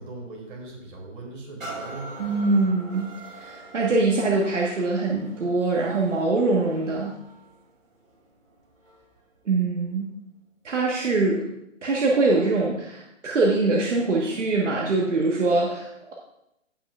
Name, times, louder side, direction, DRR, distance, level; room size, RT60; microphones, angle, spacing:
voice 1, 0.0-2.3, right 2 dB, 40° right, -3 dB, 2.8 m, -39 dB
sound 1, 1.6-9.2 9.8-9.9, right 2 dB, 85° right, 2.2 m, -44 dB
voice 2, 2.2-3.1 3.3-7.1 9.4-10.0 10.6-11.4 11.8-16.1, right 3 dB, 65° right, -2 dB, 1.5 m, -23 dB
16.0 x 5.7 x 2.5 m, 0.83 s
hypercardioid pair, 175°, 39 cm